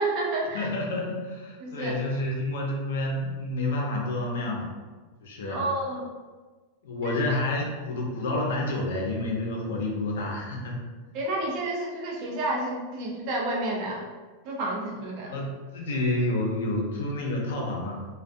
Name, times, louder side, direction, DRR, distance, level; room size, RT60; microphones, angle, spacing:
voice 1, 0.0-0.7 1.6-2.0 5.5-6.1 7.0-7.2 11.1-14.0 14.4-15.3, right 2 dB, 35° right, -2 dB, 0.5 m, -30 dB
voice 2, 0.5-4.7 5.2-5.6 6.8-10.8 15.3-18.1, left 2 dB, 85° left, 0 dB, 0.6 m, -29 dB
2.3 x 2.2 x 2.5 m, 1.3 s
supercardioid pair, 175°, 0 cm